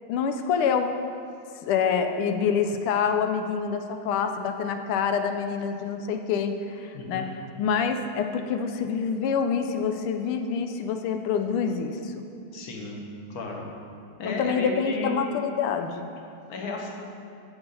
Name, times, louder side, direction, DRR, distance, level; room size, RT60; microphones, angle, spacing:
voice 1, 0.1-0.9 1.6-7.3 7.6-12.2 14.2-16.1, left 6 dB, 90° left, 6 dB, 1.6 m, -26 dB
voice 2, 6.9-7.3 12.5-13.0 13.3-13.7 14.2-15.1 16.5-16.9, left 3 dB, 50° left, 0 dB, 1.6 m, -34 dB
10.5 x 7.0 x 5.5 m, 2.5 s
omnidirectional pair, 2.3 m